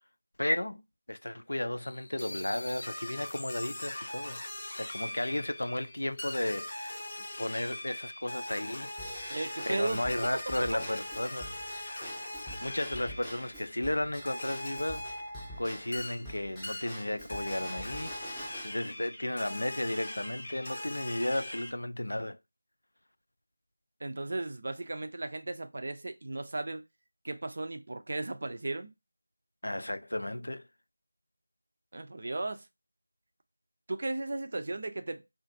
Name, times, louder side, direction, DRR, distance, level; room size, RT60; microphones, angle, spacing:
voice 1, 0.4-0.8 1.1-4.4 4.8-6.9 7.4-8.9 9.6-11.5 12.6-15.0 15.6-22.4 29.6-30.6, left 1 dB, 75° left, 0.3 m, -34 dB
sound 1, 1.8-13.9 14.3-16.3 16.6-17.0 17.3-21.7, left 1 dB, 40° left, 0.7 m, -41 dB
Drum kit / Drum / Bell, 9.0-18.7, equal, 5° left, 0.6 m, -46 dB
voice 2, 9.3-10.1 24.0-26.8 27.2-28.9 31.9-32.7 33.9-35.2, right 2 dB, 50° right, 0.4 m, -35 dB
2.5 x 2.4 x 2.5 m
figure-of-eight pair, 170°, 0 cm